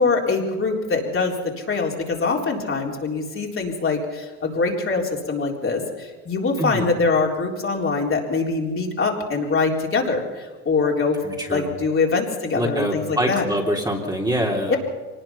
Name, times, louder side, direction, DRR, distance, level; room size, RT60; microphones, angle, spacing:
voice 1, 0.0-11.2 11.5-13.5 14.7-14.8, left 4 dB, 30° left, -1 dB, 4.0 m, -23 dB
voice 2, 11.2-11.7 12.5-14.8, equal, 10° right, -1 dB, 3.5 m, -24 dB
24.0 x 19.5 x 5.7 m, 1.3 s
hypercardioid pair, 80°, 44 cm